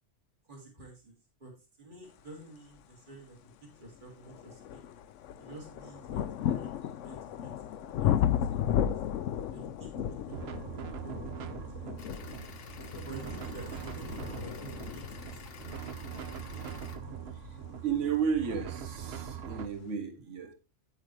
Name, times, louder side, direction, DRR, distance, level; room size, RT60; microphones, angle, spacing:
voice 1, 0.5-1.5 1.8-4.9 5.4-9.0 9.5-12.3 12.9-15.7, right 2 dB, 40° right, -2 dB, 3.0 m, -50 dB
sound 1, 3.2-3.3 3.9-18.5 19.4-19.5, left 10 dB, 85° left, 0.9 m, -35 dB
sound 2, 10.3-19.7, right 8 dB, 60° right, 0.9 m, -42 dB
sound 3, 12.0-17.0, left 6 dB, 55° left, 1.0 m, -49 dB
voice 2, 17.8-20.5, right 7 dB, 85° right, 7 dB, 1.5 m, -33 dB
9.3 x 8.2 x 3.2 m, 0.29 s
omnidirectional pair, 1.2 m